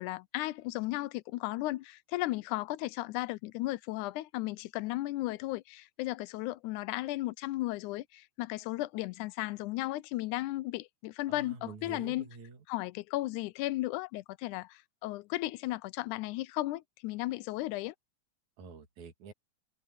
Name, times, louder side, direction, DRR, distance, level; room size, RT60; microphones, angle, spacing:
voice 1, 0.0-12.3 12.7-17.9, left 17 dB, 90° left, 2.1 m, -35 dB
voice 2, 11.3-12.6 18.6-19.3, right 5 dB, 70° right, 3.5 m, -47 dB
omnidirectional pair, 3.4 m